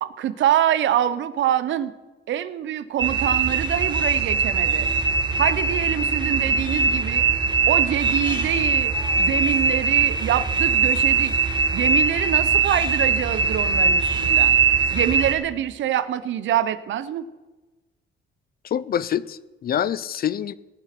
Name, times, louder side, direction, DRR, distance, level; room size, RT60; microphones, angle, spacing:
voice 1, 0.0-1.9 2.3-4.9 5.4-7.2 7.7-11.3 11.7-14.6 14.9-17.3, right 11 dB, 70° right, 0.7 m, -25 dB
sound 1, 3.0-15.3, right 5 dB, 25° right, 2.2 m, -21 dB
voice 2, 18.7-20.5, left 9 dB, 50° left, 0.5 m, -26 dB
18.0 x 6.8 x 5.9 m
cardioid pair, 90°, 20 cm